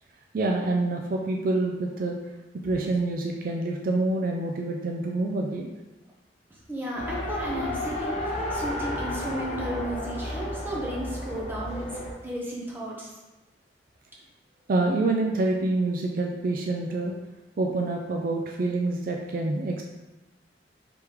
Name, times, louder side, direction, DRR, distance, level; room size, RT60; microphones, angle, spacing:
voice 1, 0.3-2.2 2.6-5.7 14.7-17.1 17.6-19.8, right 2 dB, 50° right, 1 dB, 0.3 m, -27 dB
voice 2, 6.7-11.8 12.2-13.1, right 1 dB, 10° right, -4 dB, 0.8 m, -34 dB
Race car auto racing, 6.9-12.1, left 1 dB, 40° left, 0.7 m, -32 dB
3.4 x 3.0 x 4.8 m, 1.1 s
head